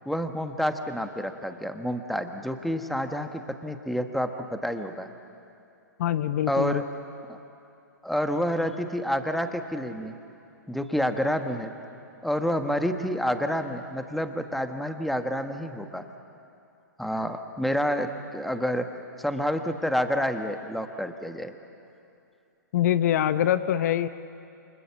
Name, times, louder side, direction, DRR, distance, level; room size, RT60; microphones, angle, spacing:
voice 1, 0.0-5.1 6.5-6.8 7.3-7.4 8.0-10.1 10.7-11.7 12.2-16.0 17.0-18.8 19.2-21.5, equal, ahead, 6 dB, 1.4 m, -28 dB
voice 2, 6.0-6.8 22.7-24.1, left 11 dB, 55° left, 13 dB, 0.8 m, -24 dB
28.5 x 25.5 x 7.2 m, 2.6 s
hypercardioid pair, 120°, 11 cm